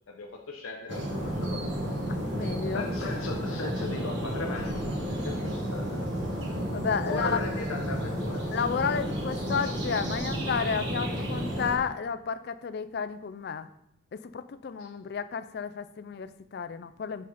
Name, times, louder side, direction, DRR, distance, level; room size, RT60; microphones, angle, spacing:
voice 1, 0.1-1.6 1.9-2.0 2.7-6.0 7.0-8.4 14.8-14.9, left 3 dB, 90° left, 1 dB, 0.8 m, -37 dB
sound 1, 0.9-11.8, equal, 55° right, 1.5 m, -32 dB
voice 2, 2.1-2.9 6.7-7.4 8.5-13.7 14.1-17.3, left 6 dB, 50° left, 11 dB, 0.3 m, -32 dB
6.7 x 4.0 x 4.9 m, 0.80 s
head